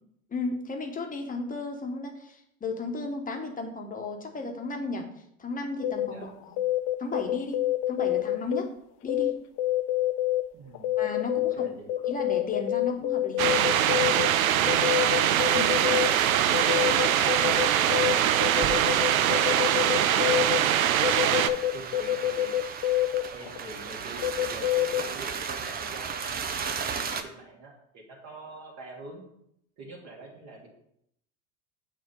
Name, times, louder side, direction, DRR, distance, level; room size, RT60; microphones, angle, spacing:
voice 1, 0.3-5.1 5.4-6.3 7.0-8.7 9.0-9.4 11.0-11.7 12.1-13.6 15.5-15.8, left 3 dB, 20° left, 3 dB, 1.2 m, -34 dB
sound 1, 5.8-6.1 6.4-8.6 9.1-9.3 9.6-10.4 10.7-14.3 14.6-16.1 16.5-18.1 18.4-20.6 21.0-25.0, left 14 dB, 45° left, 0.5 m, -26 dB
voice 2, 10.5-10.9 11.3-11.9 14.6-15.1 15.6-16.1 16.9-22.6 23.3-29.2 29.8-30.7, right 3 dB, 40° right, -2 dB, 2.0 m, -45 dB
sound 2, 13.4-21.5, right 10 dB, 80° right, 0.5 m, -23 dB
sound 3, 15.4-27.2, right 6 dB, 25° right, 0.6 m, -37 dB
7.9 x 2.8 x 5.4 m, 0.74 s
hypercardioid pair, 75°, 41 cm